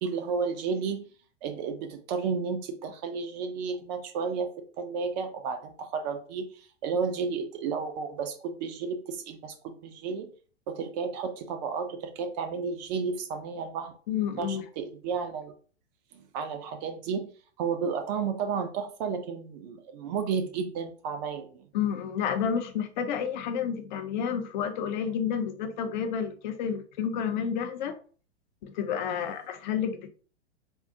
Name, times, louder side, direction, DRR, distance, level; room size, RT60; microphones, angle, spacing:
voice 1, 0.0-1.0 1.4-4.5 4.8-6.5 6.8-10.3 10.7-13.9 14.4-15.5 16.1-17.3 17.6-21.6 29.1-29.3, right 5 dB, 40° right, 0.6 m, -32 dB
voice 2, 14.1-14.6 21.7-27.9 28.6-30.1, left 7 dB, 40° left, 0.5 m, -30 dB
3.5 x 2.0 x 2.6 m
hypercardioid pair, 115°, 35 cm